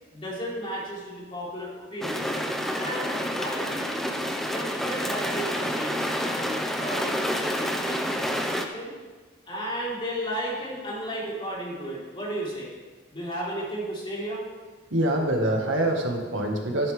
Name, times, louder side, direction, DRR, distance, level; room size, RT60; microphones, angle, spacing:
voice 1, 0.1-2.3 2.7-4.1 4.5-6.0 6.3-8.9 9.5-12.7 13.1-14.4, equal, 25° left, -6 dB, 4.0 m, -34 dB
sound 1, 2.0-8.6, equal, ahead, 0.8 m, -28 dB
voice 2, 14.9-16.9, right 1 dB, 85° right, 1 dB, 1.8 m, -25 dB
14.0 x 10.5 x 3.6 m, 1.3 s
head